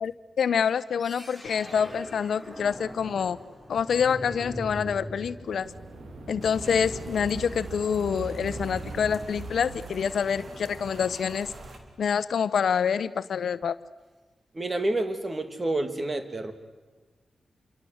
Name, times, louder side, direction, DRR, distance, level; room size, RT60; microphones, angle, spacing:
voice 1, 0.0-3.4 3.7-5.7 6.3-11.5 12.0-13.8, left 7 dB, 85° left, 14 dB, 0.9 m, -26 dB
sound 1, 1.0-12.1, equal, 15° right, 3.6 m, -43 dB
sound 2, 5.5-11.4, right 4 dB, 80° right, 2.4 m, -42 dB
Rain, 6.4-11.8, right 2 dB, 60° right, 3.9 m, -48 dB
voice 2, 14.5-16.5, right 2 dB, 30° right, 9 dB, 2.7 m, -29 dB
28.5 x 24.5 x 8.1 m, 1.3 s
cardioid pair, 75°, 0 cm